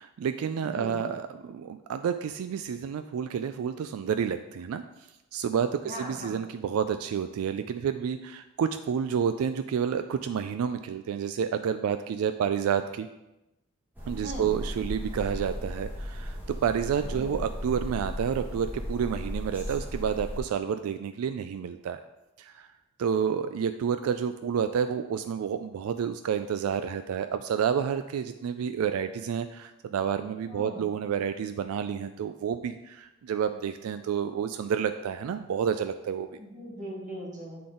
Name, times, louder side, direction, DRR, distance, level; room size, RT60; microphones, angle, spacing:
voice 1, 0.0-4.8 5.3-13.1 14.1-22.0 22.4-22.7 23.0-36.4, right 7 dB, 85° right, 10 dB, 0.3 m, -29 dB
voice 2, 0.6-1.0 5.8-6.3 14.2-14.5 17.2-17.4 30.5-30.8 36.4-37.6, equal, 35° right, -3 dB, 1.6 m, -39 dB
sound 1, 13.9-20.4, equal, 10° right, 1.2 m, -36 dB
8.5 x 3.9 x 3.7 m, 0.95 s
head